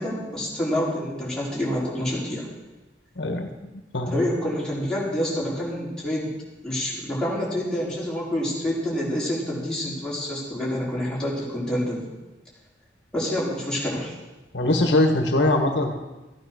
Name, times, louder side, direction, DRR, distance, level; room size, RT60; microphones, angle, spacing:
voice 1, 0.0-2.5 4.1-6.3 6.6-12.0 13.1-14.1, equal, 5° left, -7 dB, 4.6 m, -27 dB
voice 2, 3.2-3.5 3.9-4.1 14.5-16.0, left 1 dB, 75° left, 4 dB, 1.5 m, -21 dB
14.5 x 9.5 x 6.3 m, 1.1 s
head